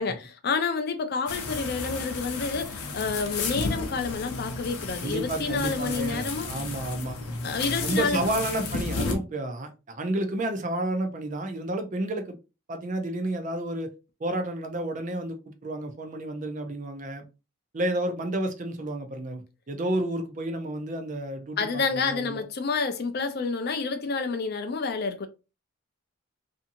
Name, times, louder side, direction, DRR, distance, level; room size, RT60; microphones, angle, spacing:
voice 1, 0.0-6.5 7.4-8.3 21.6-25.3, left 4 dB, 45° left, 0.4 m, -29 dB
sound 1, 1.3-9.1, left 3 dB, 90° left, 0.7 m, -33 dB
voice 2, 5.0-7.2 7.8-12.4 12.7-13.9 14.2-17.2 17.7-22.4, right 1 dB, 35° right, 0.5 m, -31 dB
2.7 x 2.6 x 2.5 m
head